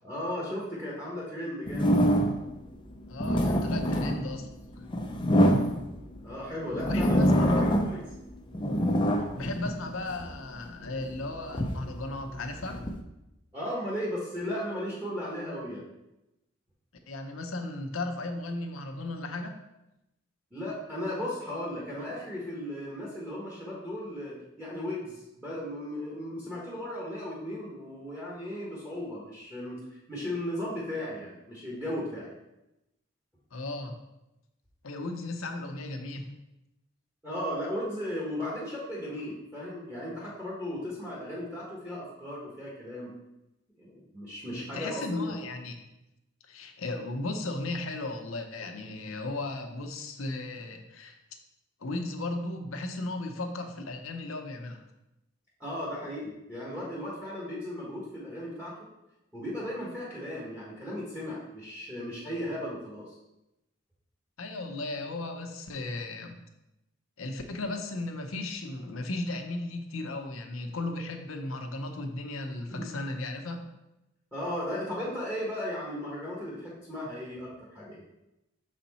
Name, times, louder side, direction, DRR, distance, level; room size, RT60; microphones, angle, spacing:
voice 1, 0.0-2.1 6.2-8.0 13.5-15.8 20.5-29.8 30.1-32.3 37.2-43.1 43.8-45.4 55.6-58.7 59.3-63.2 74.3-78.0, left 1 dB, 10° right, -6 dB, 1.2 m, -36 dB
sound 1, 1.7-2.5 3.0-6.2 6.7-8.1 8.4-10.3 10.9-13.0, equal, 25° left, 0.5 m, -25 dB
voice 2, 3.1-4.5 6.7-7.6 9.4-12.8 17.1-19.5 33.5-34.0 34.8-36.3 44.5-45.8 46.5-51.2 51.8-54.8 64.4-66.4 67.2-73.6, left 2 dB, 80° left, 4 dB, 0.8 m, -36 dB
6.5 x 4.3 x 4.1 m, 0.93 s
head